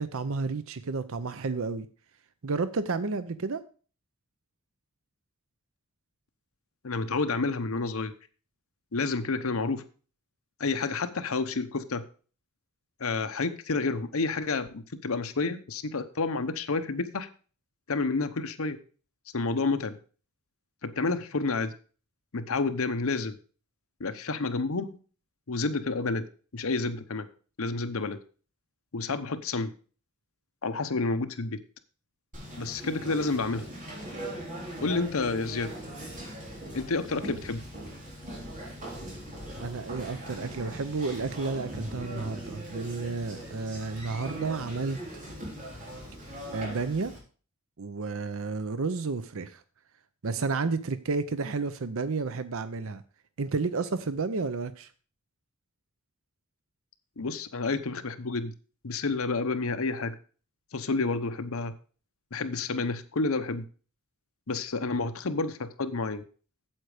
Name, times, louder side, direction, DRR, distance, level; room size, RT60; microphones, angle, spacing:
voice 1, 0.0-1.9 2.4-3.6 39.6-45.0 46.5-47.1 47.8-49.6 50.2-53.0 53.4-54.9, right 4 dB, 65° right, 13 dB, 0.7 m, -31 dB
voice 2, 6.8-8.1 8.9-9.8 10.6-12.0 13.0-17.3 17.9-18.8 19.3-20.0 20.8-21.7 22.3-23.4 24.0-25.0 25.5-26.3 26.5-27.3 27.6-28.2 28.9-29.7 30.6-31.6 32.6-33.7 34.8-35.7 36.7-37.6 57.2-58.5 58.8-60.1 60.7-61.7 62.3-63.6 64.5-66.2, left 3 dB, 70° left, 11 dB, 0.9 m, -29 dB
Conversation, 32.3-47.2, equal, 40° right, 3.8 m, -40 dB
8.8 x 8.1 x 4.9 m, 0.39 s
head